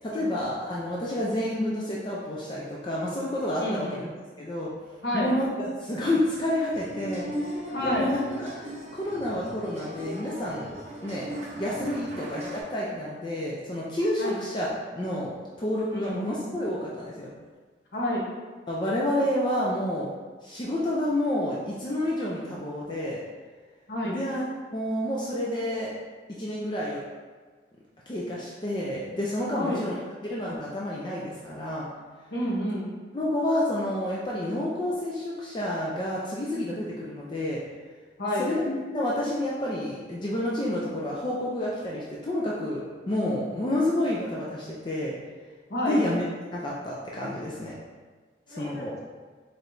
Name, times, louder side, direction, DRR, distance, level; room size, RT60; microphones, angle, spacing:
voice 1, 0.0-4.1 4.4-4.7 5.1-10.7 11.0-14.7 14.9-17.3 18.7-20.1 20.4-23.2 24.0-24.4 24.7-25.9 26.4-27.0 28.1-29.9 30.2-31.9 33.1-37.6 38.4-45.1 45.8-46.2 46.5-47.7 48.5-48.9, left 1 dB, 25° left, -5 dB, 0.4 m, -29 dB
voice 2, 3.6-4.1 5.0-5.3 7.7-8.1 12.1-12.2 14.2-14.4 15.9-16.2 17.9-18.3 23.9-24.2 29.5-29.8 32.3-32.9 38.2-38.5 45.7-46.0 48.5-49.0, left 1 dB, 60° left, -4 dB, 0.9 m, -29 dB
sound 1, 6.7-12.6, equal, 40° right, 0.7 m, -37 dB
4.6 x 3.1 x 2.6 m, 1.4 s
head